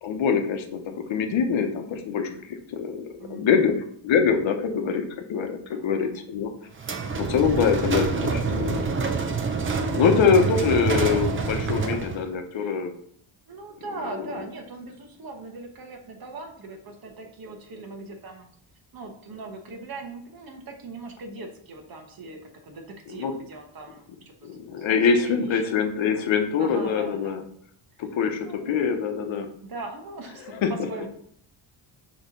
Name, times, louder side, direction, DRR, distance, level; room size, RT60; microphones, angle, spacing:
voice 1, 0.0-3.7 4.0-6.5 7.2-8.8 9.9-12.9 14.1-14.2 23.1-23.3 24.4-27.4 28.0-29.5 30.6-30.7, left 6 dB, 65° left, 5 dB, 1.0 m, -24 dB
voice 2, 3.2-3.8 5.7-6.1 12.5-12.8 13.5-18.5 18.9-25.6 26.6-27.4 28.4-28.7 29.7-31.1, right 2 dB, 45° right, 3 dB, 1.2 m, -40 dB
sound 1, 6.8-12.2, right 4 dB, 25° right, 0.6 m, -26 dB
6.3 x 3.2 x 5.2 m, 0.66 s
cardioid pair, 165°, 49 cm